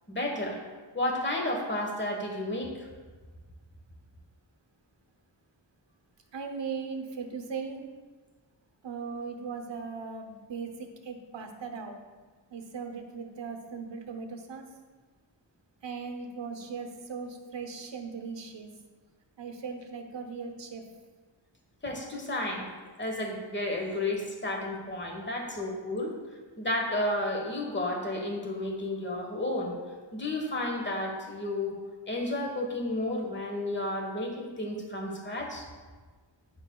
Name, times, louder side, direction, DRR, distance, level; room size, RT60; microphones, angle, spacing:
voice 1, 0.1-0.6 0.9-2.9 21.8-22.7 23.0-26.2 26.6-29.8 30.1-31.8 32.1-35.7, left 1 dB, 25° left, 1 dB, 1.2 m, -32 dB
voice 2, 6.3-7.8 8.8-12.0 12.5-14.7 15.8-18.7 19.4-20.9, right 5 dB, 75° right, 4 dB, 0.9 m, -38 dB
9.3 x 5.3 x 2.3 m, 1.4 s
wide cardioid pair, 65°, 45 cm